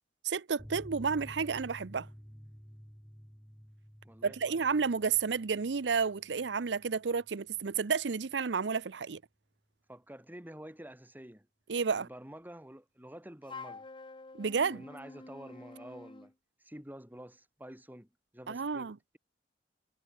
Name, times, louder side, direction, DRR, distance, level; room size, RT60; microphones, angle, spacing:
voice 1, 0.2-2.1 4.2-9.2 11.7-12.1 14.4-14.8 18.5-19.0, right 5 dB, 90° right, 0.6 m, -31 dB
sound 1, 0.6-7.7 7.9-8.1 8.4-8.5, equal, 5° left, 4.8 m, -52 dB
voice 2, 4.0-4.6 9.9-11.5 11.9-13.9 14.7-16.3 16.6-19.2, right 1 dB, 10° right, 4.3 m, -49 dB
Wind instrument woodwind instrument, 13.5-16.3, left 3 dB, 30° left, 1.0 m, -48 dB
head